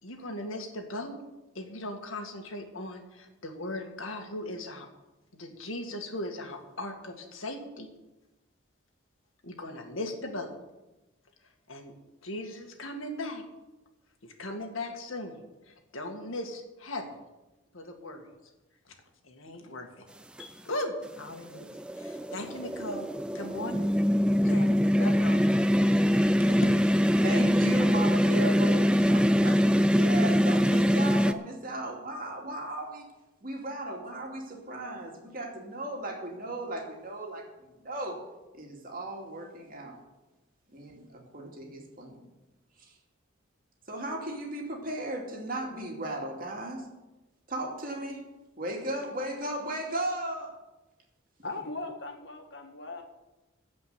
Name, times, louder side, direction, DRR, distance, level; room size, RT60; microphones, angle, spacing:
voice 1, 0.0-1.2 1.5-4.9 5.3-7.9 9.4-10.5 11.7-11.9 12.2-13.4 14.2-17.1 17.7-18.3 18.9-19.0 19.2-20.0 20.4-21.7 22.0-23.1 23.3-23.9 24.4-25.4 26.5-26.6, left 1 dB, 75° left, 4 dB, 2.0 m, -38 dB
sound 1, 20.4-20.5 21.6-31.3, equal, 5° right, 0.4 m, -23 dB
voice 2, 27.2-29.6 29.9-33.0 33.4-38.2 38.5-40.0 40.7-42.2 43.9-46.8 47.5-48.2 48.6-50.6, right 1 dB, 40° right, 1 dB, 2.6 m, -36 dB
voice 3, 51.4-53.0, left 2 dB, 55° left, 4 dB, 1.8 m, -39 dB
15.5 x 5.3 x 9.4 m, 1.0 s
head